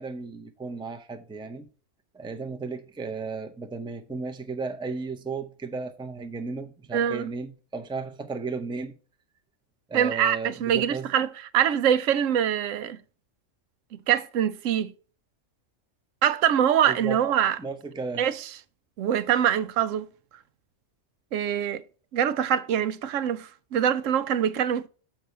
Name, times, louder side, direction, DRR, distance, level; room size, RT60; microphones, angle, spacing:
voice 1, 0.0-1.7 2.1-8.9 9.9-11.1 16.9-17.2 17.6-18.3, right 4 dB, 5° right, 0.5 m, -34 dB
voice 2, 6.9-7.3 9.9-13.0 13.9-14.9 16.2-17.6 18.2-18.5 19.0-20.1 21.3-21.8 22.1-24.9, right 9 dB, 85° right, 1.0 m, -24 dB
6.9 x 4.5 x 5.4 m
omnidirectional pair, 1.3 m